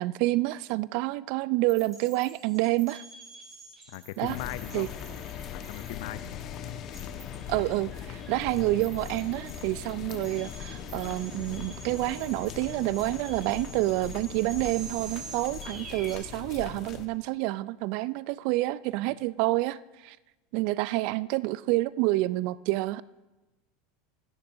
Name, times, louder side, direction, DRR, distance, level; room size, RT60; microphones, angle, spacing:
voice 1, 0.0-3.0 4.2-4.4 4.7-4.9 7.5-20.2 20.5-23.0, right 19 dB, 60° right, 20 dB, 0.4 m, -28 dB
sound 1, 1.7-16.2, right 4 dB, 25° right, 4.2 m, -47 dB
voice 2, 3.9-4.9 5.5-6.4, left 16 dB, 65° left, 16 dB, 0.4 m, -39 dB
sound 2, 4.2-17.0, left 9 dB, 45° left, 1.3 m, -40 dB
25.0 x 10.0 x 2.7 m, 1.1 s
hypercardioid pair, 90°, 0 cm